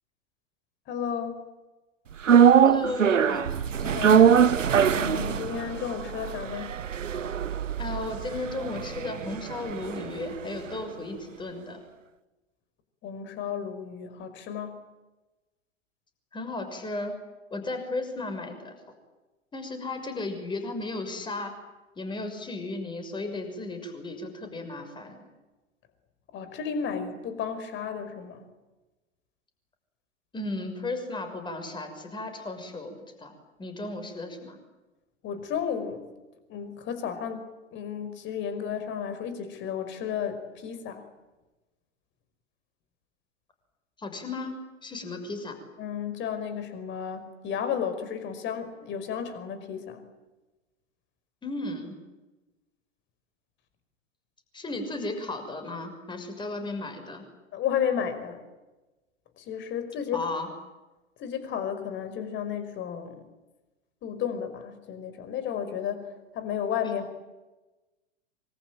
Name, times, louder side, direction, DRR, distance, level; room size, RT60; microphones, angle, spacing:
voice 1, 0.9-1.4 3.8-4.4 4.8-6.7 13.0-14.7 26.3-28.4 35.2-36.0 36.5-37.5 37.7-41.0 45.8-50.0 57.5-58.4 59.4-60.3 61.2-63.2 64.0-66.0 66.3-67.1, left 8 dB, 30° left, 10 dB, 5.3 m, -33 dB
sound 1, 2.2-10.5 10.8-10.9, right 8 dB, 80° right, 1.3 m, -22 dB
voice 2, 2.6-3.5 7.8-11.8 16.3-17.1 17.5-18.7 19.5-21.5 22.0-25.3 30.3-33.3 33.6-34.6 44.0-45.6 51.4-52.0 54.5-57.2 60.1-60.5, left 2 dB, 10° left, 7 dB, 6.3 m, -35 dB
25.5 x 25.0 x 9.0 m, 1.1 s
figure-of-eight pair, 110°, 38 cm